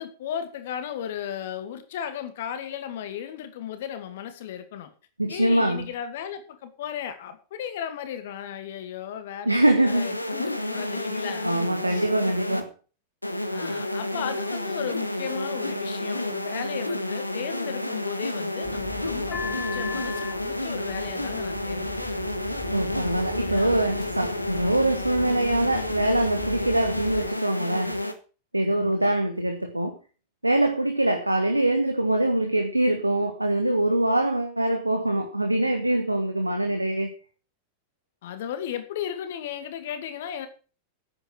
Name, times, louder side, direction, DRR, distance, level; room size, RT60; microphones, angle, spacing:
voice 1, 0.0-4.9 5.3-11.5 11.9-12.1 13.5-22.2 23.4-23.8 28.8-29.0 38.2-40.5, left 9 dB, 55° left, 9 dB, 2.1 m, -35 dB
voice 2, 5.2-5.9 9.4-10.1 11.4-12.7 22.7-28.0 28.5-30.0 30.4-37.1, right 1 dB, 85° right, 6 dB, 1.4 m, -23 dB
sound 1, 9.9-12.6 13.2-28.1, left 1 dB, 85° left, 1.3 m, -30 dB
sound 2, 18.6-27.3, left 5 dB, 25° left, 3.5 m, -39 dB
10.5 x 9.0 x 6.3 m, 0.36 s
figure-of-eight pair, 90°, 0 cm